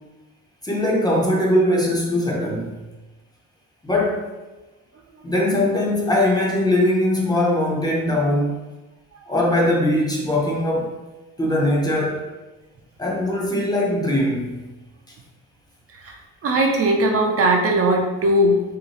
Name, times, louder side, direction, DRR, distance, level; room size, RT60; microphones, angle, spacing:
voice 1, 0.6-2.8 3.8-4.2 5.2-8.6 9.3-10.9 11.4-12.2 13.0-14.6, left 1 dB, 10° left, -3 dB, 0.6 m, -21 dB
voice 2, 15.9-18.6, right 1 dB, 45° right, 1 dB, 0.4 m, -19 dB
2.7 x 2.2 x 3.2 m, 1.1 s
cardioid pair, 95°, 32 cm